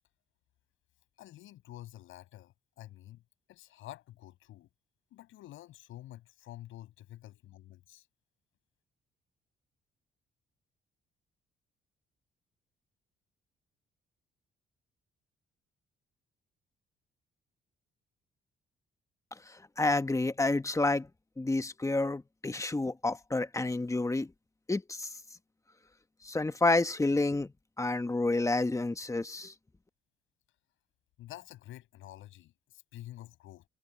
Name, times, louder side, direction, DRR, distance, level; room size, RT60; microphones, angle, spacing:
voice 1, 1.2-3.2 3.5-4.7 5.1-8.1 31.2-33.7, left 14 dB, 85° left, 7.6 m, -49 dB
voice 2, 19.8-21.1 21.4-24.3 24.7-25.1 26.2-27.5 27.8-29.5, left 2 dB, 15° left, 1.2 m, -29 dB
cardioid pair, 90°, 20 cm